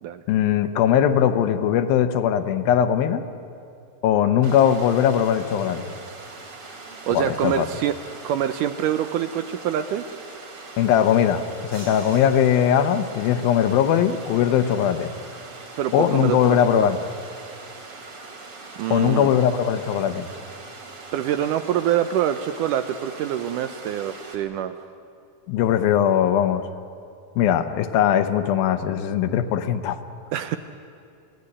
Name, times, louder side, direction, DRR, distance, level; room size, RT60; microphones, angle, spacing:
voice 1, 0.3-3.3 4.0-5.9 7.1-7.7 10.8-15.1 15.9-17.0 18.9-20.3 25.5-26.7 27.4-30.0, left 9 dB, 80° left, 10 dB, 2.7 m, -20 dB
Water, 4.4-24.4, right 3 dB, 40° right, 3.4 m, -41 dB
voice 2, 7.1-8.0 8.2-10.1 15.8-16.9 18.8-19.3 21.1-24.7 30.3-30.6, right 10 dB, 75° right, 10 dB, 2.0 m, -25 dB
sound 1, 11.7-13.5, right 1 dB, 55° right, 9.3 m, -45 dB
27.0 x 17.5 x 9.8 m, 2.5 s
omnidirectional pair, 4.3 m